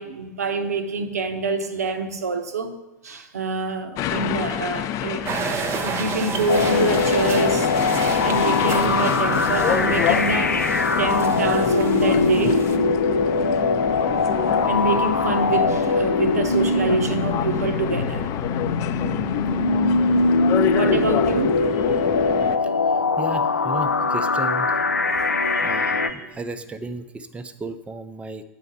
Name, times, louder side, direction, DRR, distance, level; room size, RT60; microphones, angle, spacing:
voice 1, 0.0-2.7 3.0-5.3 5.5-7.7 8.2-10.6 11.0-12.6 14.7-21.9 25.2-26.4, right 3 dB, 75° right, 0.8 m, -27 dB
sound 1, 4.0-22.6, left 11 dB, 40° left, 0.6 m, -27 dB
sound 2, 5.3-12.8, right 5 dB, 30° right, 0.9 m, -31 dB
sound 3, 6.5-26.1, left 3 dB, 85° left, 0.4 m, -22 dB
voice 2, 23.2-24.7 25.6-28.4, right 3 dB, 15° right, 0.5 m, -34 dB
8.3 x 4.9 x 6.6 m
figure-of-eight pair, 85°, 9 cm